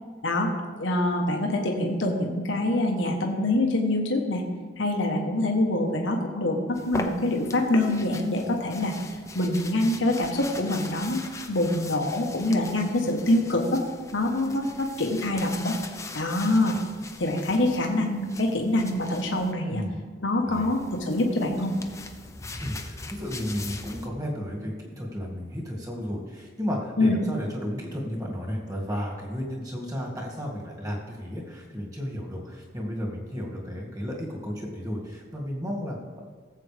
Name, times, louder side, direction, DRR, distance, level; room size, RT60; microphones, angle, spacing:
voice 1, 0.8-4.4 4.8-8.9 9.3-11.2 11.5-13.8 14.1-15.7 16.1-16.8 17.2-19.8 20.2-21.7 27.0-27.2, left 1 dB, 85° left, 1 dB, 1.3 m, -25 dB
sound 1, 6.7-19.5 20.5-24.1, left 3 dB, 15° left, 0.7 m, -41 dB
voice 2, 22.6-36.2, equal, 20° right, -2 dB, 2.1 m, -33 dB
17.5 x 7.7 x 3.4 m, 1.5 s
head